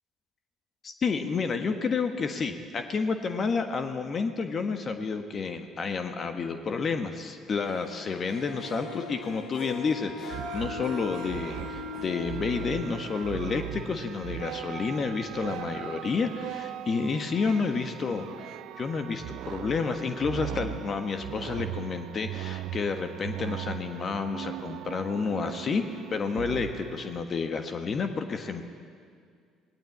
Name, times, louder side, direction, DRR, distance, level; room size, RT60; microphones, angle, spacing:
voice 1, 0.8-25.8 26.1-28.6, left 5 dB, 45° left, 7 dB, 1.5 m, -30 dB
Harp, 7.6-13.9, left 5 dB, 70° left, 2.9 m, -41 dB
sound 1, 10.3-27.2, right 14 dB, 65° right, 0.5 m, -39 dB
19.0 x 18.5 x 8.7 m, 2.2 s
hypercardioid pair, 60°, 0 cm